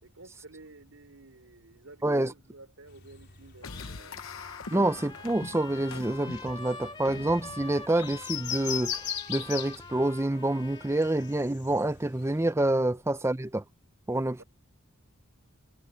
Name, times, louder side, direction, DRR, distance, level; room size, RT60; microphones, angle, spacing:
voice 1, 0.0-4.2 12.9-13.3 14.4-14.5, right 2 dB, 75° right, 3.6 m, -52 dB
sound 1, 2.9-12.5, left 9 dB, 50° left, 3.8 m, -40 dB
sound 2, 3.6-9.4, left 4 dB, 70° left, 1.0 m, -45 dB
Trumpet, 3.6-11.5, left 3 dB, 20° left, 2.3 m, -46 dB
voice 2, 4.7-9.0 9.3-13.6 14.1-14.4, right 1 dB, 10° right, 0.6 m, -27 dB
head